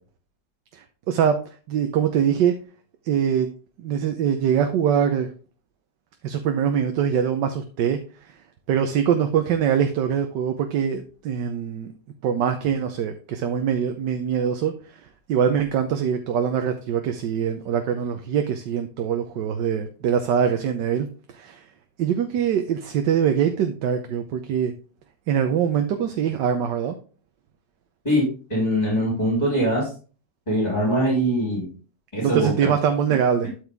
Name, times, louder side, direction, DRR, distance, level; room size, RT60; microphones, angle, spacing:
voice 1, 0.7-1.4 1.7-2.5 3.0-3.5 3.8-5.3 6.2-8.0 8.3-8.4 8.7-11.9 12.2-21.6 22.0-24.7 25.3-26.9 32.2-33.5, right 8 dB, 85° right, 6 dB, 1.4 m, -23 dB
voice 2, 28.0-29.9 30.5-31.7 32.1-32.7, equal, 25° left, -3 dB, 3.7 m, -22 dB
12.0 x 4.9 x 3.5 m, 0.36 s
omnidirectional pair, 1.8 m